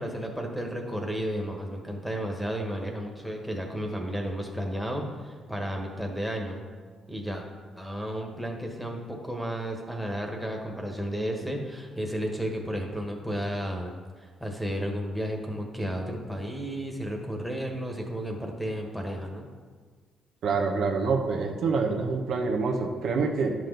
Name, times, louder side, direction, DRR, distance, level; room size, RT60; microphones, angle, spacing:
voice 1, 0.0-6.6 7.1-7.4 7.8-13.9 14.2-19.5, equal, ahead, 2 dB, 1.4 m, -33 dB
voice 2, 20.4-23.5, right 4 dB, 75° right, 1 dB, 1.0 m, -26 dB
10.0 x 6.2 x 4.0 m, 1.5 s
cardioid pair, 90°, 0 cm